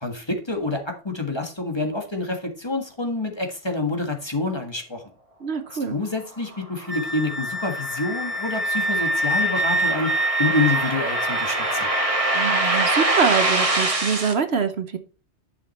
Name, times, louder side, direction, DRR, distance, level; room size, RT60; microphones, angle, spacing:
voice 1, 0.0-5.0 5.9-11.9, left 3 dB, 20° left, 4 dB, 1.7 m, -27 dB
voice 2, 5.4-5.9 12.3-15.0, right 6 dB, 60° right, 9 dB, 1.1 m, -24 dB
sound 1, 6.5-14.3, right 2 dB, 30° right, 1.5 m, -25 dB
Wind instrument woodwind instrument, 6.9-13.3, right 1 dB, 10° right, 0.9 m, -26 dB
11.0 x 6.0 x 4.2 m, 0.34 s
omnidirectional pair, 1.2 m